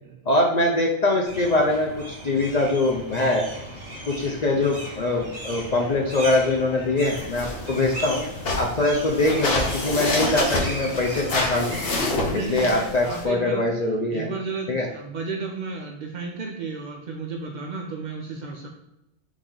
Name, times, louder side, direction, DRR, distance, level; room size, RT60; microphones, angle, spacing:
voice 1, 0.3-3.5 4.1-8.2 8.6-11.8 12.3-14.3 14.7-14.9, left 2 dB, 70° left, -1 dB, 0.4 m, -23 dB
sound 1, 1.2-12.0, right 1 dB, 35° right, 0.9 m, -37 dB
sound 2, 7.0-13.2, left 2 dB, 50° left, 1.0 m, -28 dB
voice 2, 12.2-13.7 14.1-18.7, right 4 dB, 75° right, 1 dB, 0.4 m, -33 dB
4.1 x 3.1 x 3.7 m, 0.90 s
omnidirectional pair, 1.4 m